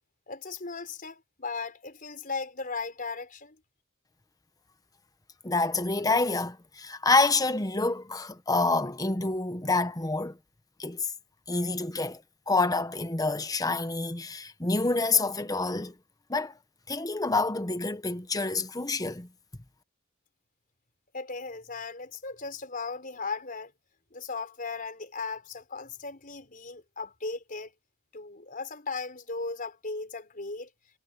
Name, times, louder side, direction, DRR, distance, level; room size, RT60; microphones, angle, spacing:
voice 1, 0.3-3.6 21.1-23.7 24.1-27.7 28.1-30.7, left 4 dB, 40° left, 4.9 m, -37 dB
voice 2, 5.4-10.4 10.8-11.1 11.5-15.9 16.3-16.5 16.9-19.3, left 3 dB, 15° left, 1.0 m, -27 dB
head